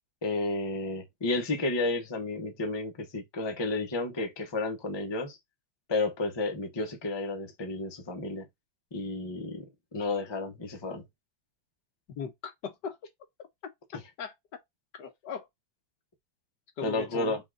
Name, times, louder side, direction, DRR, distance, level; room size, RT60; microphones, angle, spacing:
voice 1, 0.2-5.4 5.9-8.5 8.9-9.6 9.9-11.0 16.8-17.4, left 2 dB, 30° left, 0.4 m, -31 dB
voice 2, 12.2-13.0 14.2-14.3 15.0-15.5 16.8-17.3, left 6 dB, 70° left, 1.6 m, -38 dB
5.4 x 2.4 x 3.7 m
omnidirectional pair, 1.9 m